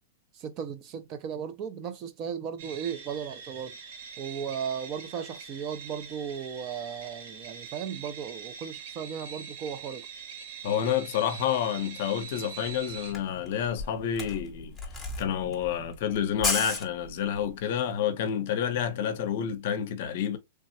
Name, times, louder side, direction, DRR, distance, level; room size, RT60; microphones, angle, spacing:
voice 1, 0.3-3.8 4.2-10.1, right 7 dB, 25° right, 0.3 m, -36 dB
sound 1, 2.6-13.1, right 6 dB, 50° right, 0.8 m, -43 dB
voice 2, 10.6-14.7 15.2-20.4, left 9 dB, 50° left, 0.6 m, -29 dB
Camera, 12.7-12.8 13.0-17.5, left 3 dB, 5° left, 0.7 m, -34 dB
3.3 x 2.1 x 2.6 m
supercardioid pair, 170°, 0 cm